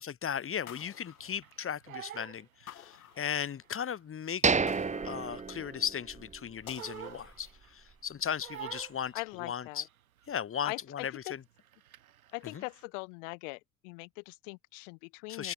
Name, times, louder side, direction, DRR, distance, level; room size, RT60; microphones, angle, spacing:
voice 1, 0.0-4.4 5.0-9.1 9.4-9.9 10.3-11.4 12.5-12.6 15.3-15.5, left 8 dB, 30° left, 3.6 m, -36 dB
Crying sobbing, 0.6-3.3 3.6-5.9 6.2-7.9 8.4-10.3 10.6-11.0 11.2-12.8, right 11 dB, 70° right, 6.2 m, -49 dB
sound 1, 0.7-2.0 2.7-3.8 4.7-5.9 6.7-7.8, left 11 dB, 75° left, 3.3 m, -52 dB
sound 2, 4.4-6.4 6.7-6.8 7.3-7.5, right 4 dB, 15° right, 2.4 m, -30 dB
voice 2, 9.1-9.8 10.6-11.3 12.3-15.5, left 33 dB, 55° left, 2.1 m, -41 dB
open air
figure-of-eight pair, 65°, 43 cm